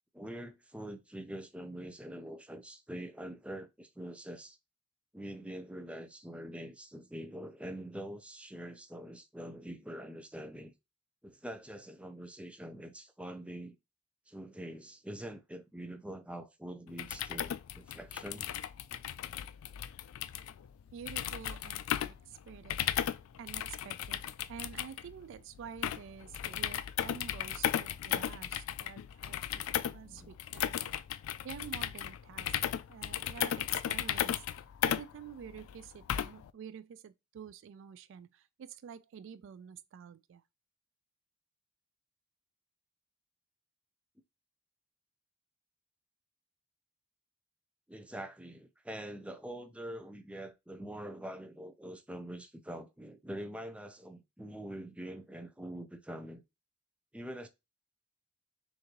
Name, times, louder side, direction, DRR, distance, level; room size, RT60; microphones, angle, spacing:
voice 1, 0.1-4.6 5.1-10.7 11.2-13.8 14.3-18.5 30.0-30.3 47.9-56.4 57.1-57.5, right 1 dB, 5° right, 0.5 m, -44 dB
sound 1, 16.9-36.5, left 10 dB, 85° left, 0.3 m, -36 dB
voice 2, 20.9-23.0 23.4-31.0 31.4-32.5 32.9-34.4 34.8-40.4, right 7 dB, 65° right, 0.3 m, -49 dB
6.4 x 2.6 x 2.9 m
head